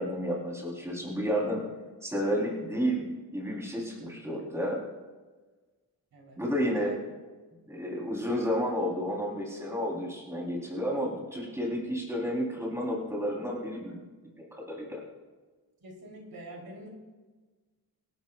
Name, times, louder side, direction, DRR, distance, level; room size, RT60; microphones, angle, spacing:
voice 1, 0.0-1.6 2.0-4.8 6.4-6.9 7.7-14.0 14.4-15.0, equal, 5° right, -3 dB, 3.4 m, -31 dB
voice 2, 6.1-6.4 6.7-7.0 15.8-16.9, right 2 dB, 70° right, -1 dB, 3.3 m, -45 dB
25.0 x 12.0 x 2.3 m, 1.3 s
wide cardioid pair, 160°, 37 cm